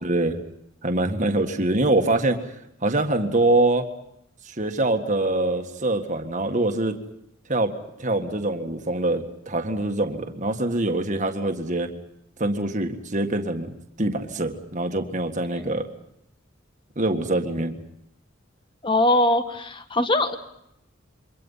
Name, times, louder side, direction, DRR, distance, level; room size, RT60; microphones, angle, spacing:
voice 1, 0.0-0.4 0.8-2.4 2.8-3.9 4.5-7.0 7.5-7.7 8.0-11.9 12.4-13.7 14.0-15.9 17.0-17.8, right 2 dB, 35° right, 5 dB, 1.8 m, -24 dB
voice 2, 18.8-20.4, left 1 dB, 25° left, 9 dB, 1.6 m, -21 dB
28.0 x 24.0 x 5.7 m, 0.78 s
head